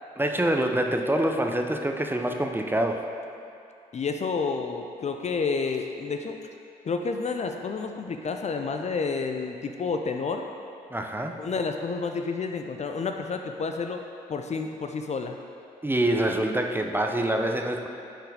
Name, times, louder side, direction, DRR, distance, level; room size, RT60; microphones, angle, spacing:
voice 1, 0.2-3.0 10.9-11.5 15.8-17.9, right 1 dB, 10° right, 3 dB, 0.6 m, -26 dB
voice 2, 3.9-6.4 6.8-10.5 11.4-14.0 14.3-15.4, left 4 dB, 35° left, 4 dB, 0.5 m, -30 dB
9.0 x 4.5 x 3.5 m, 2.5 s
hypercardioid pair, 40°, 19 cm